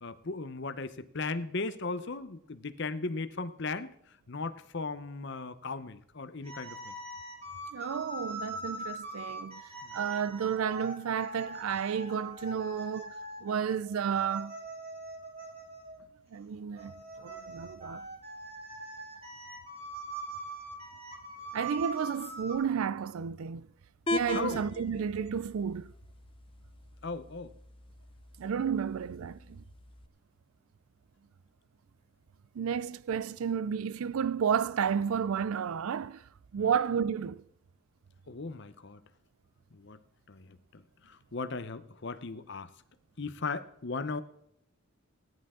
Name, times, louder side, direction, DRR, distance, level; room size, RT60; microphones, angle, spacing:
voice 1, 0.0-3.9 4.3-6.9 9.8-10.0 24.3-24.6 27.0-27.5 36.6-36.7 38.3-39.0 39.7-40.0 40.3-42.7 43.2-44.2, left 3 dB, 50° left, 0.8 m, -37 dB
sound 1, 6.4-16.0 16.8-22.6, right 1 dB, 25° right, 3.3 m, -42 dB
voice 2, 7.7-9.6 9.9-13.1 13.4-14.6 16.3-18.1 21.5-23.7 24.1-25.9 28.4-29.6 32.5-37.4, right 7 dB, 75° right, 0.4 m, -32 dB
sound 2, 24.1-30.1, left 2 dB, 25° left, 0.5 m, -40 dB
17.0 x 11.0 x 3.7 m
head